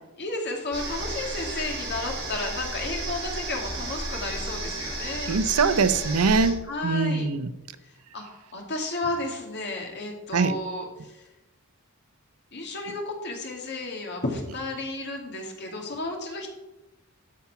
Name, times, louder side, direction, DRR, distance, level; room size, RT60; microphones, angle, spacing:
voice 1, 0.2-5.3 6.6-7.3 8.1-11.1 12.5-16.5, left 2 dB, 50° left, 1 dB, 2.4 m, -32 dB
sound 1, 0.7-6.5, right 2 dB, 55° right, 3.9 m, -33 dB
voice 2, 5.3-7.5 10.3-10.5, right 4 dB, 90° right, 13 dB, 0.7 m, -23 dB
13.5 x 5.9 x 5.9 m, 0.98 s
head